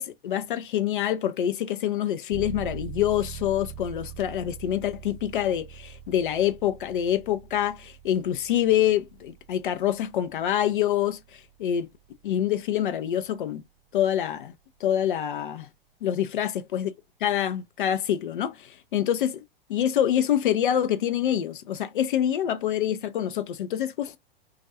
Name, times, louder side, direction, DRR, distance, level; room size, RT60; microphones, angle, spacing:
voice 1, 0.0-11.9 12.2-13.6 13.9-14.5 14.8-15.7 16.0-16.9 17.2-19.4 19.7-24.2, left 10 dB, 60° left, 0.4 m, -26 dB
sound 1, 2.3-12.9, right 9 dB, 25° right, 0.5 m, -43 dB
2.3 x 2.1 x 2.6 m
figure-of-eight pair, 105°, 30 cm